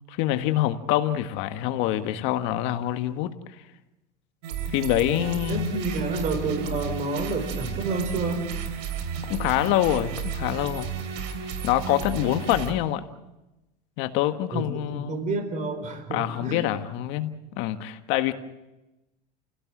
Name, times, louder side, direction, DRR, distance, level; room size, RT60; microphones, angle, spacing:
voice 1, 0.1-3.3 4.7-5.7 9.3-10.9 11.6-13.1 14.0-15.3 16.1-18.3, left 13 dB, 65° left, 8 dB, 1.6 m, -25 dB
sound 1, 4.4-12.7, right 6 dB, 85° right, 3.3 m, -33 dB
voice 2, 5.5-8.4 14.5-16.7, right 3 dB, 40° right, 7 dB, 4.7 m, -29 dB
29.0 x 17.0 x 6.1 m, 0.98 s
supercardioid pair, 115°, 21 cm